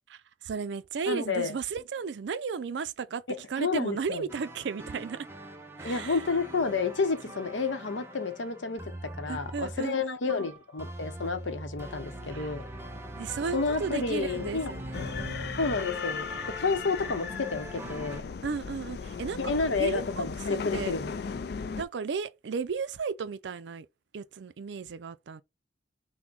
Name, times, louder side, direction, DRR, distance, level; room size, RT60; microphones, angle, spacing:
voice 1, 0.4-3.2 3.5-5.3 5.8-6.2 9.3-10.4 12.3-12.5 13.2-15.7 18.4-19.4 19.8-20.9 21.8-23.9 24.1-25.4, right 5 dB, 70° right, 0.4 m, -35 dB
voice 2, 1.1-1.5 3.6-4.2 5.8-12.6 13.5-14.7 15.6-16.3 16.6-18.3 19.4-21.1, left 4 dB, 80° left, 0.8 m, -30 dB
sound 1, 4.3-18.2, right 1 dB, 15° right, 0.6 m, -42 dB
sound 2, 14.9-21.8, left 5 dB, 55° left, 0.4 m, -37 dB
6.0 x 2.1 x 3.8 m
head